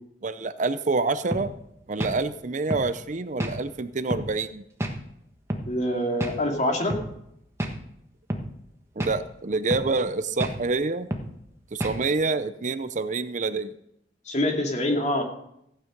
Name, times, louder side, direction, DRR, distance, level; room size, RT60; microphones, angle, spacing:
voice 1, 0.2-1.5 1.9-4.6 9.0-11.1 11.7-13.7, right 3 dB, 45° right, 13 dB, 0.6 m, -27 dB
sound 1, 1.3-1.5 2.0-2.2 2.7-2.9 3.4-3.6 4.1-4.3 4.8-5.0 5.5-5.7 6.2-6.4 6.9-7.1 7.6-7.8 8.3-8.5 9.0-9.2 9.7-9.9 10.4-10.6 11.1-11.3 11.8-12.0, right 1 dB, 15° right, 1.4 m, -29 dB
voice 2, 5.7-7.0 14.3-15.2, left 1 dB, 40° left, 2 dB, 2.4 m, -25 dB
15.0 x 9.1 x 5.3 m, 0.76 s
head